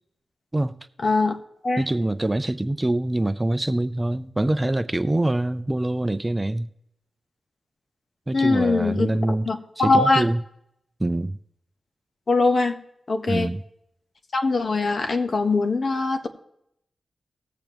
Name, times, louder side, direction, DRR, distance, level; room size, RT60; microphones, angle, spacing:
voice 1, 1.0-1.4 1.6-1.8 8.3-10.2 12.3-12.7 13.1-13.5 14.3-16.3, left 3 dB, 55° left, 1.3 m, -22 dB
voice 2, 1.8-6.7 8.3-9.5 9.8-10.4 11.0-11.4 13.3-13.6, right 1 dB, 20° right, 0.6 m, -24 dB
18.5 x 6.9 x 3.1 m
cardioid pair, 55°, 0 cm